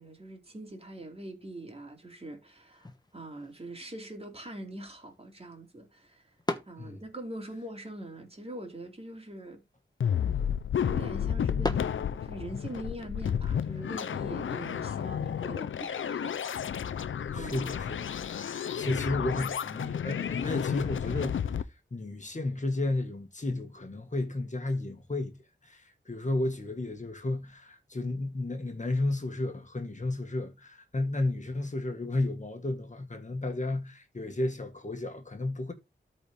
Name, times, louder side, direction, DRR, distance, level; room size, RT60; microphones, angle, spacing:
voice 1, 0.0-6.2 6.7-9.6 10.8-16.9 17.3-17.7, right 1 dB, 30° right, 2.7 m, -43 dB
sound 1, 2.7-12.7, left 2 dB, 20° left, 1.2 m, -43 dB
sound 2, 10.0-21.6, left 8 dB, 90° left, 0.5 m, -32 dB
voice 2, 17.3-21.6 21.9-25.3 25.6-35.7, left 2 dB, 40° left, 1.7 m, -33 dB
13.0 x 4.4 x 3.5 m
wide cardioid pair, 75°, 20 cm